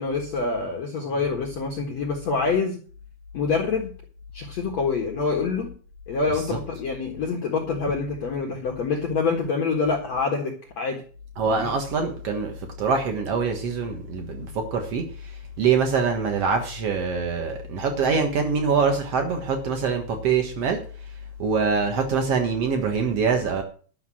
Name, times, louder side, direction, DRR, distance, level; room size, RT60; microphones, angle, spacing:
voice 1, 0.0-2.8 3.3-3.9 4.3-5.7 6.1-11.0 11.5-11.7 12.0-12.1, left 4 dB, 65° left, 1.7 m, -26 dB
voice 2, 11.4-20.8 21.4-23.6, right 5 dB, 85° right, 1.3 m, -24 dB
12.0 x 6.5 x 7.5 m
omnidirectional pair, 5.3 m